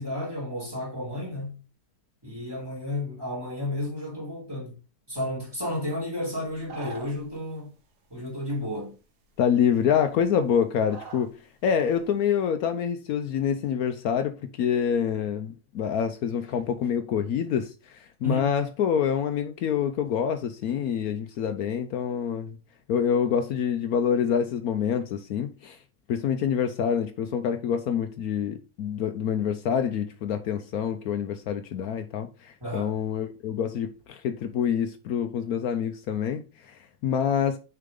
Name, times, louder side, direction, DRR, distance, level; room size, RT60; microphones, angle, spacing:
voice 1, 0.0-1.6 2.2-4.7 5.1-7.7 8.1-8.9 18.2-18.5 32.6-32.9, left 1 dB, 15° right, 2.8 m, -32 dB
sound 1, 6.4-7.4 8.5-8.6 9.3-9.4 9.7-10.4 10.8-11.3 11.6-12.1, right 3 dB, 85° right, 1.8 m, -43 dB
voice 2, 9.4-11.3 11.6-22.6 22.9-25.8 26.1-37.6, left 8 dB, 75° left, 1.1 m, -26 dB
6.6 x 4.7 x 3.7 m
omnidirectional pair, 1.7 m